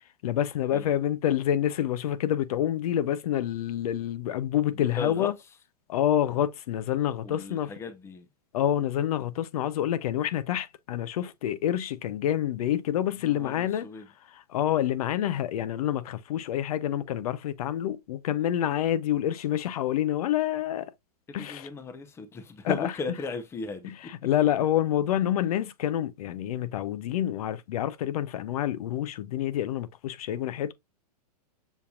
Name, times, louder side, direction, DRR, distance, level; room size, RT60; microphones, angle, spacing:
voice 1, 0.2-5.3 5.9-7.7 8.5-13.9 14.3-20.9 21.3-21.7 22.6-22.9 24.1-30.7, left 11 dB, 60° left, 0.6 m, -27 dB
voice 2, 4.7-5.3 7.2-8.3 13.2-14.1 21.3-23.9, left 3 dB, 10° left, 0.6 m, -37 dB
7.0 x 2.8 x 2.3 m
hypercardioid pair, 130°, 21 cm